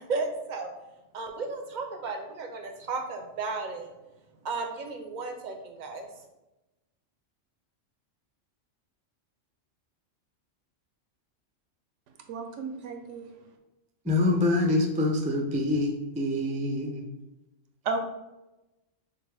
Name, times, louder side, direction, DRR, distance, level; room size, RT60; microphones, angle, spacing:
voice 1, 0.1-0.7 1.1-3.9 4.4-6.0, right 3 dB, 45° right, 3 dB, 0.7 m, -34 dB
voice 2, 12.3-13.3 17.8-18.0, right 4 dB, 75° right, 5 dB, 0.9 m, -33 dB
voice 3, 14.0-17.0, left 2 dB, 10° right, 0 dB, 0.4 m, -25 dB
6.6 x 2.4 x 3.3 m, 0.98 s
omnidirectional pair, 1.3 m